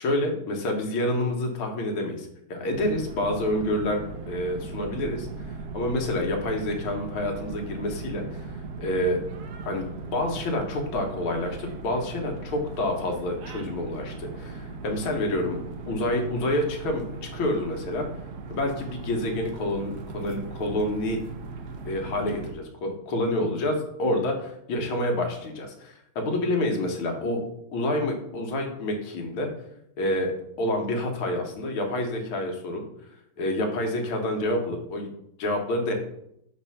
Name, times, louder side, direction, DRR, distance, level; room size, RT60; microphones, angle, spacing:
voice 1, 0.0-4.0 4.3-5.3 5.7-8.5 8.8-9.2 9.7-15.6 15.9-18.0 18.5-21.2 21.9-27.4 27.7-29.5 30.0-32.8 33.4-35.1 35.4-35.9, left 1 dB, 70° left, 2 dB, 1.8 m, -28 dB
sound 1, 2.7-22.5, right 4 dB, 70° right, 0.9 m, -38 dB
4.3 x 4.2 x 5.6 m, 0.76 s
omnidirectional pair, 2.4 m